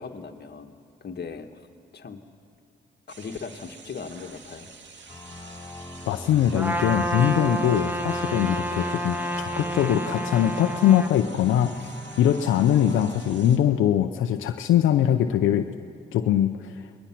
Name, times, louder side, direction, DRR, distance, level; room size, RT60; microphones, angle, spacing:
voice 1, 0.0-1.6 1.9-2.2 3.2-4.7, left 5 dB, 55° left, 5 dB, 1.6 m, -38 dB
sound 1, 3.1-13.6, right 4 dB, 65° right, 2.2 m, -48 dB
sound 2, 5.1-14.4, left 1 dB, 15° left, 3.7 m, -41 dB
voice 2, 6.1-11.9 12.2-15.7 16.1-16.8, left 10 dB, 90° left, 7 dB, 0.6 m, -22 dB
Trumpet, 6.5-11.1, equal, 10° right, 1.6 m, -29 dB
27.5 x 21.0 x 6.0 m, 2.3 s
supercardioid pair, 55°, 20 cm